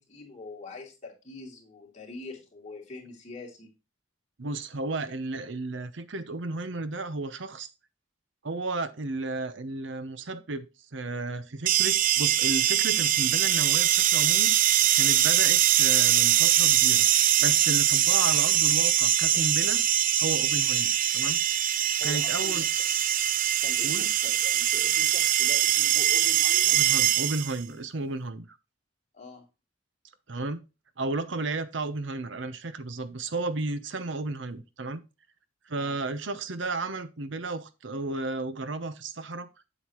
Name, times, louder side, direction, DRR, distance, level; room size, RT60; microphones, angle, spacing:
voice 1, 0.0-3.7 22.0-22.7 23.6-26.8 29.1-29.4 35.7-36.0, left 3 dB, 35° left, 2.8 m, -44 dB
voice 2, 4.4-7.7 8.4-10.7 10.9-17.1 17.4-19.8 20.2-21.4 22.0-22.7 23.8-24.1 26.7-28.6 30.3-30.6 31.0-35.0 35.7-39.5, right 2 dB, 65° right, 0.8 m, -33 dB
sound 1, 11.7-27.6, right 12 dB, 45° right, 0.4 m, -23 dB
8.0 x 8.0 x 3.0 m
head